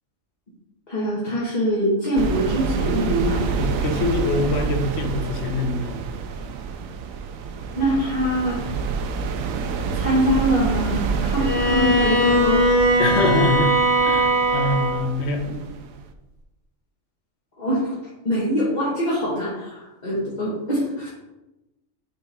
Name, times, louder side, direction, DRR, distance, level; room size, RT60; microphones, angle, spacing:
voice 1, 0.9-3.7 7.7-8.6 9.9-12.6 15.5-15.6 17.6-17.9 18.2-21.1, equal, 30° left, -8 dB, 1.8 m, -23 dB
sound 1, 2.2-16.1, right 5 dB, 85° right, 1.0 m, -28 dB
voice 2, 3.6-6.1 13.0-13.7 14.0-15.4, left 2 dB, 55° left, 5 dB, 1.1 m, -24 dB
Bowed string instrument, 11.4-15.1, right 1 dB, 30° right, 1.4 m, -20 dB
6.8 x 4.5 x 4.3 m, 0.99 s
omnidirectional pair, 1.4 m